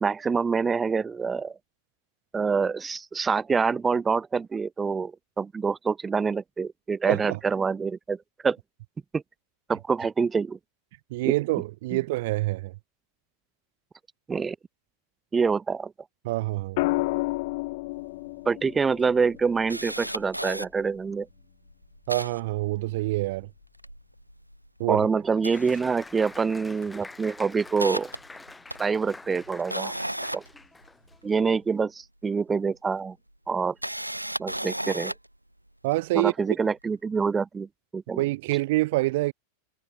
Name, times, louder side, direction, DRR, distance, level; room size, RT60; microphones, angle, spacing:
voice 1, 0.0-1.6 2.3-8.2 8.4-8.6 9.1-9.2 9.7-10.6 11.3-11.4 11.9-12.0 14.3-14.6 15.3-15.9 18.5-21.3 24.9-28.1 28.8-29.9 30.3-30.4 31.2-33.2 33.5-33.8 34.4-35.1 36.1-37.7 37.9-38.2, right 5 dB, 15° right, 0.4 m, -26 dB
voice 2, 7.1-7.4 11.1-12.7 16.2-16.8 22.1-23.5 24.8-25.1 35.8-36.3 38.2-39.3, right 19 dB, 50° right, 0.8 m, -26 dB
sound 1, 16.8-20.9 22.6-23.0, left 23 dB, 50° left, 0.5 m, -32 dB
Camera, 18.1-18.2 18.5-18.6 19.0-20.7 21.3-21.4 21.7-23.3 23.6-24.9 25.3-26.4 26.7-27.0 27.4-31.4 32.5-32.6 33.5-35.3 35.9-36.0, right 1 dB, 90° right, 0.8 m, -35 dB
Applause, 25.5-31.2, left 3 dB, 10° left, 4.0 m, -46 dB
figure-of-eight pair, 90°, 0 cm